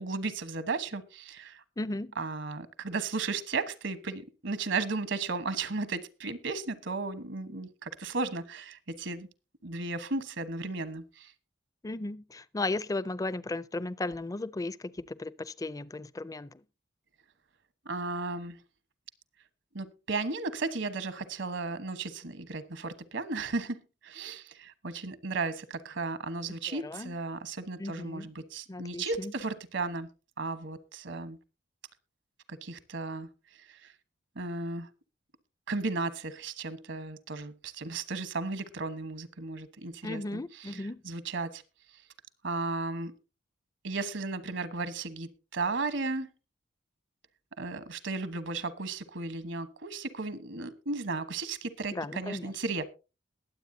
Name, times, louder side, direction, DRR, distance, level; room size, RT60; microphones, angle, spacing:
voice 1, 0.0-1.6 2.2-9.3 9.6-11.3 17.8-18.6 19.7-30.1 30.4-31.4 32.5-33.3 33.7-33.9 34.3-34.9 35.7-41.6 42.4-43.1 43.8-46.3 47.6-52.8, right 3 dB, 75° right, 1.2 m, -35 dB
voice 2, 1.8-2.1 11.8-16.6 26.5-27.2 27.8-28.3 28.7-29.3 40.0-41.0 51.9-52.5, left 2 dB, 20° left, 0.4 m, -36 dB
21.5 x 8.1 x 2.7 m
head